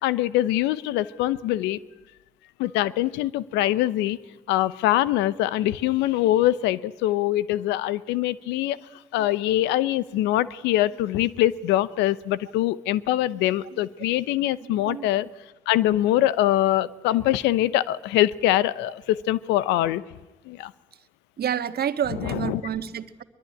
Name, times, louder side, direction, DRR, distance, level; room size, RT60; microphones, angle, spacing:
voice 1, 0.0-1.8 2.6-4.2 4.5-8.8 9.1-15.3 15.7-20.0 20.5-20.7 22.2-22.6, left 14 dB, 85° left, 18 dB, 0.8 m, -23 dB
voice 2, 14.6-15.1 21.4-23.2, right 9 dB, 65° right, 10 dB, 1.6 m, -29 dB
22.5 x 22.5 x 9.9 m, 1.1 s
hypercardioid pair, 40°, 18 cm